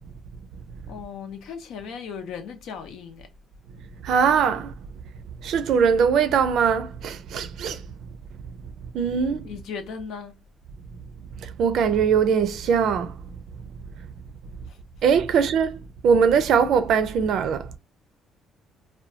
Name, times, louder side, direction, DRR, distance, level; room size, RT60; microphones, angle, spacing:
voice 1, 0.9-3.3 9.4-10.3 15.3-15.4, left 6 dB, 75° left, 0.7 m, -37 dB
voice 2, 4.0-4.7 5.4-7.8 8.9-9.4 11.4-13.2 15.0-15.8 16.0-17.8, right 6 dB, 60° right, 0.4 m, -21 dB
2.8 x 2.2 x 2.5 m
cardioid pair, 150°, 0 cm